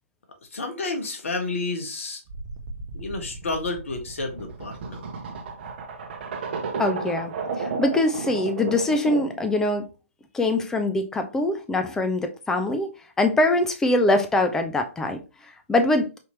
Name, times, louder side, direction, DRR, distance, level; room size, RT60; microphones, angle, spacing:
voice 1, 0.5-2.2 2.9-5.0, left 3 dB, 65° left, 1.3 m, -30 dB
sound 1, 2.3-9.5, right 4 dB, 45° right, 0.9 m, -33 dB
voice 2, 6.8-9.9 10.3-12.9 13.2-15.2 15.7-16.1, left 2 dB, 5° left, 0.5 m, -23 dB
5.0 x 2.8 x 3.2 m
figure-of-eight pair, 140°, 8 cm